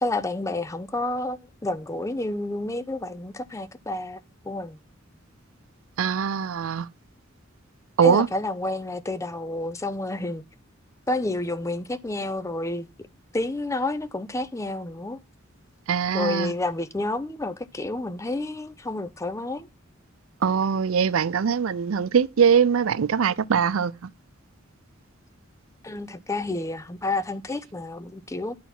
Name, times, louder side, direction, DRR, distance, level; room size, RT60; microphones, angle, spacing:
voice 1, 0.0-4.2 4.4-4.8 8.0-10.4 11.1-12.9 13.3-15.2 16.1-19.7 25.8-28.5, left 2 dB, 15° left, 0.5 m, -29 dB
voice 2, 6.0-6.9 8.0-8.3 15.9-16.5 20.4-23.9, right 7 dB, 85° right, 0.5 m, -22 dB
10.5 x 4.1 x 5.9 m
head